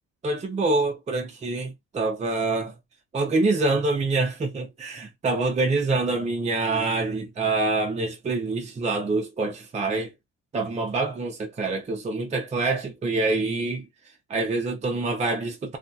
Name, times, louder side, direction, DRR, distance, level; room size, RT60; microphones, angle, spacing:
voice 1, 0.2-2.7 3.1-10.1 10.5-13.9 14.3-15.8, right 3 dB, 25° right, 0.6 m, -26 dB
4.0 x 2.4 x 2.2 m
cardioid pair, 160°, 30 cm